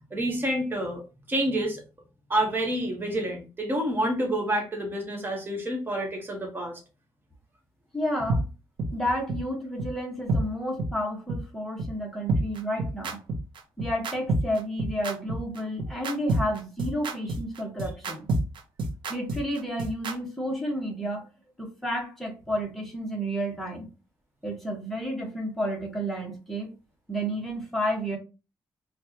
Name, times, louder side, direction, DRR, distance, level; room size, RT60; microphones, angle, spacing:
voice 1, 0.1-1.0 1.3-1.8 2.3-6.8, right 1 dB, 25° right, 1 dB, 1.4 m, -28 dB
voice 2, 7.9-8.4 8.9-13.2 13.8-18.3 19.1-21.3 21.6-23.9 24.4-26.7 27.1-28.2, equal, 5° left, -1 dB, 1.3 m, -31 dB
sound 1, 8.3-8.4 8.8-8.9 9.3-9.4 9.8-9.9 10.3-10.4 10.8-10.9 11.3-11.4 11.8-11.9 12.3-20.1, right 1 dB, 75° right, 0.9 m, -27 dB
4.4 x 2.5 x 2.9 m, 0.30 s
cardioid pair, 120°, 8 cm